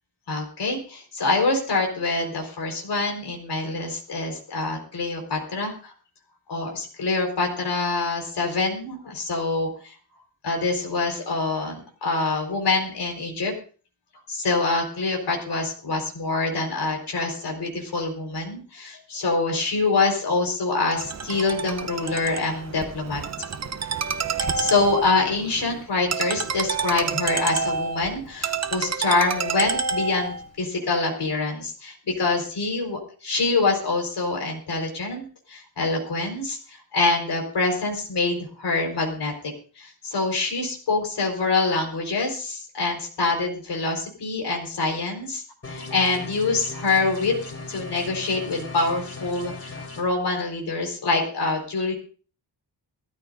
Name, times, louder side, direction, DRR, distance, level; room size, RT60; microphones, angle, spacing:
voice 1, 0.3-5.9 6.5-9.9 10.4-13.5 14.3-23.2 24.5-47.3 47.7-51.9, left 3 dB, 65° left, 1 dB, 4.6 m, -25 dB
Ringtone, 20.9-30.5, right 5 dB, 35° right, 0.9 m, -28 dB
sound 1, 45.6-50.0, left 3 dB, 35° left, 3.1 m, -37 dB
21.5 x 13.5 x 2.7 m, 0.39 s
wide cardioid pair, 155°, 44 cm